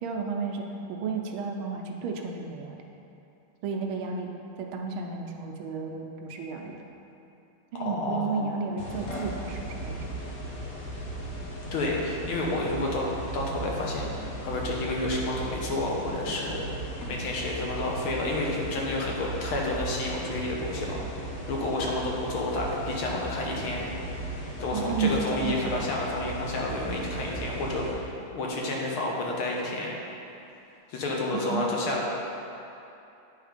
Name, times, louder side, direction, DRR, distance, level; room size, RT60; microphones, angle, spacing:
voice 1, 0.0-2.8 3.6-6.8 7.7-10.1 24.7-25.8 31.3-31.7, right 5 dB, 75° right, 2 dB, 1.4 m, -32 dB
voice 2, 7.7-8.5 11.7-23.8 24.2-29.9 30.9-32.1, left 2 dB, 75° left, -2 dB, 1.7 m, -30 dB
sound 1, 8.8-27.9, right 1 dB, 50° left, 1.3 m, -36 dB
9.1 x 3.6 x 5.0 m, 2.8 s
omnidirectional pair, 2.4 m